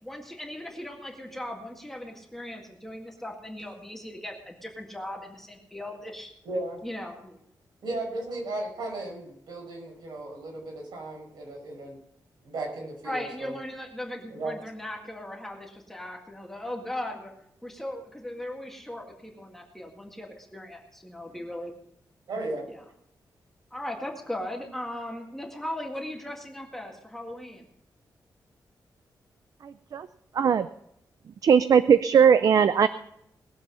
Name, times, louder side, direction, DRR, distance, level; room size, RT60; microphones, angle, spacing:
voice 1, 0.0-6.3 6.8-7.4 13.0-17.3 17.6-21.7 22.6-22.8 23.7-27.7, left 1 dB, 5° left, 0 dB, 1.9 m, -38 dB
voice 2, 6.4-6.8 7.8-12.0 12.4-13.6 14.3-14.6 21.3-21.4 22.3-22.6, right 2 dB, 80° right, 0 dB, 5.4 m, -35 dB
voice 3, 30.4-30.7 31.4-32.9, right 7 dB, 55° right, 13 dB, 0.5 m, -19 dB
20.5 x 7.5 x 5.6 m, 0.76 s
wide cardioid pair, 175°, 7 cm